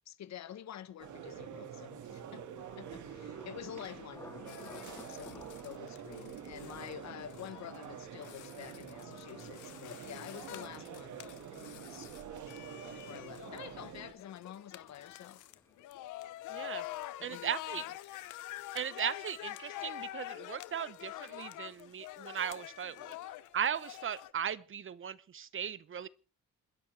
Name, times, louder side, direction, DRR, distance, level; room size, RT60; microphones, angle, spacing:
voice 1, 0.1-2.4 2.8-4.6 5.1-11.2 11.5-12.1 13.0-15.4 17.2-17.8, left 10 dB, 65° left, 1.2 m, -48 dB
sound 1, 1.0-14.1, right 8 dB, 75° right, 2.0 m, -47 dB
Thunder, 2.6-18.3 18.6-19.2 19.6-19.9, left 2 dB, 10° left, 3.6 m, -59 dB
sound 2, 4.5-24.3, left 15 dB, 85° left, 0.9 m, -47 dB
voice 2, 16.5-16.9 17.2-17.8 18.7-23.1 23.5-26.1, right 8 dB, 45° right, 0.9 m, -37 dB
28.0 x 10.5 x 3.4 m
cardioid pair, 90°, 30 cm